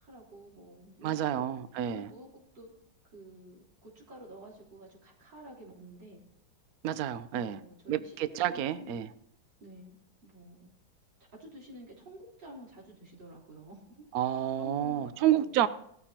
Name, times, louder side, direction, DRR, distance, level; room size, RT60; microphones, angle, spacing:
voice 1, 0.0-1.4 1.8-2.7 3.1-6.2 7.3-9.0 9.6-10.7 11.3-14.1 14.6-15.5, right 1 dB, 55° right, 4.7 m, -50 dB
voice 2, 1.0-2.1 6.8-7.6 7.9-9.1 14.1-15.7, right 11 dB, 80° right, 0.8 m, -29 dB
18.0 x 14.0 x 2.9 m
omnidirectional pair, 2.3 m